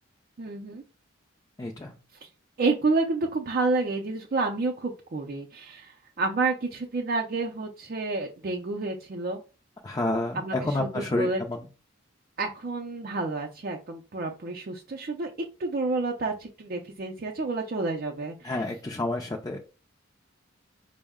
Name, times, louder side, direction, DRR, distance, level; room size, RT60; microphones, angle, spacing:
voice 1, 0.4-0.8 2.2-2.3 2.6-9.4 10.3-11.4 12.4-15.3 15.6-18.6, right 3 dB, 45° right, 2 dB, 0.5 m, -29 dB
voice 2, 1.6-1.9 9.8-11.6 18.4-19.6, left 2 dB, 20° left, 0 dB, 0.4 m, -29 dB
5.3 x 2.1 x 3.5 m, 0.33 s
head